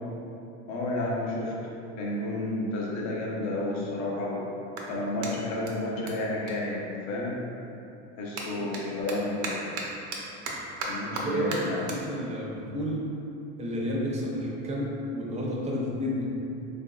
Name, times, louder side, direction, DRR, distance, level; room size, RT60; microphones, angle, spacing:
voice 1, 0.7-1.5 2.0-4.4 4.9-7.4 8.2-9.6 10.9-11.8, left 2 dB, 55° left, -3 dB, 0.7 m, -31 dB
Clapping, 3.9-7.4 7.7-14.4, right 3 dB, 70° right, 0.7 m, -39 dB
voice 2, 11.1-13.1 13.6-16.3, equal, 20° right, -4 dB, 0.5 m, -31 dB
3.4 x 2.6 x 2.3 m, 2.8 s
supercardioid pair, 120°, 34 cm